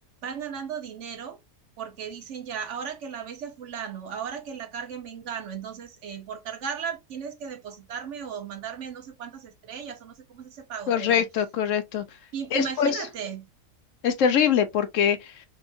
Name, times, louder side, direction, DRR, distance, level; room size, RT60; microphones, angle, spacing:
voice 1, 0.2-1.4 1.8-11.2 12.3-13.5, right 7 dB, 65° right, 1.0 m, -36 dB
voice 2, 10.9-12.0 12.5-13.0 14.0-15.4, left 8 dB, 70° left, 0.9 m, -23 dB
3.6 x 3.1 x 2.5 m
omnidirectional pair, 1.5 m